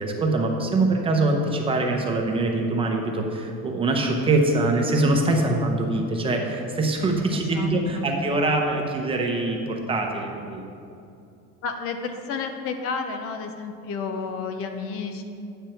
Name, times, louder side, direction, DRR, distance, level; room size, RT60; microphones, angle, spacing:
voice 1, 0.0-10.6, right 2 dB, 20° right, 1 dB, 0.8 m, -23 dB
voice 2, 7.3-8.1 11.6-15.2, left 5 dB, 50° left, 6 dB, 0.7 m, -31 dB
8.9 x 8.6 x 4.5 m, 2.5 s
cardioid pair, 165°, 30 cm